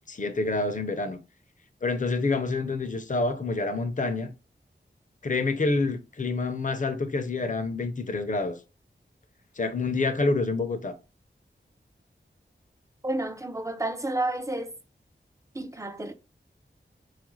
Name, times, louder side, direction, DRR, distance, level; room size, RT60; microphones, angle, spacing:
voice 1, 0.1-1.2 1.8-4.3 5.2-8.6 9.6-10.9, left 3 dB, 40° left, 0.5 m, -27 dB
voice 2, 13.0-14.7 15.5-16.1, right 2 dB, 15° right, 0.4 m, -30 dB
4.3 x 2.4 x 3.1 m
wide cardioid pair, 70°, 20 cm